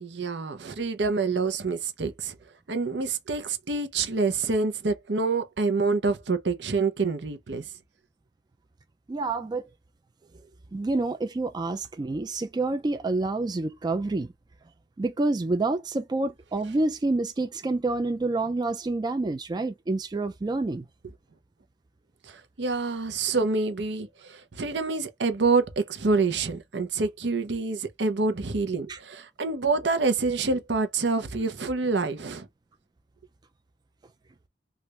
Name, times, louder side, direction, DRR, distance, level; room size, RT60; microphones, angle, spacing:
voice 1, 0.0-2.3 2.7-7.6 22.3-32.5, right 4 dB, 75° right, 0.7 m, -27 dB
voice 2, 9.1-9.6 10.7-14.3 15.0-20.8 28.9-29.0, right 2 dB, 25° right, 0.3 m, -28 dB
3.2 x 2.4 x 2.9 m
head